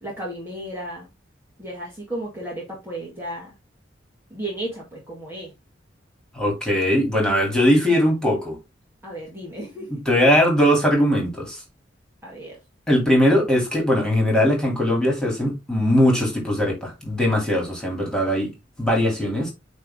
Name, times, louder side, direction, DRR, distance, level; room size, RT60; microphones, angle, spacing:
voice 1, 0.0-1.1 1.6-3.5 4.3-5.5 9.0-10.0 12.2-12.6, right 1 dB, 10° right, 2.2 m, -34 dB
voice 2, 6.3-8.6 10.1-11.6 12.9-18.5 18.8-19.5, equal, 5° left, 3.1 m, -20 dB
9.2 x 3.5 x 3.7 m
head